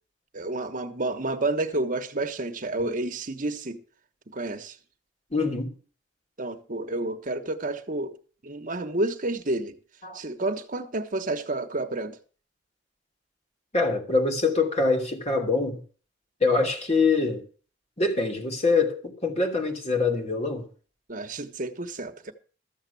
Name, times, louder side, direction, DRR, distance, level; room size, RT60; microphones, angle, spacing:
voice 1, 0.3-3.8 4.3-4.8 6.4-9.8 10.1-12.2 21.1-22.3, right 2 dB, 45° right, 1.2 m, -30 dB
voice 2, 5.3-5.7 10.0-10.2 13.7-15.8 16.4-17.4 18.0-20.7, left 3 dB, 35° left, 2.9 m, -24 dB
13.5 x 7.3 x 6.9 m
head